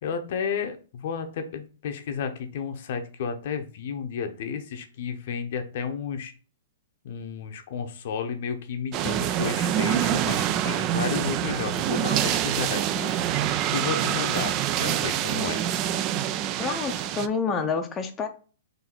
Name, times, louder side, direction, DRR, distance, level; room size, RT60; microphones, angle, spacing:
voice 1, 0.0-6.3 7.0-13.1 13.7-15.6, left 6 dB, 60° left, 6 dB, 0.7 m, -32 dB
sound 1, 8.9-17.3, right 11 dB, 35° right, 0.3 m, -26 dB
voice 2, 16.6-18.3, left 5 dB, 20° left, 3 dB, 0.6 m, -28 dB
3.9 x 2.7 x 4.3 m, 0.38 s
hypercardioid pair, 130°, 0 cm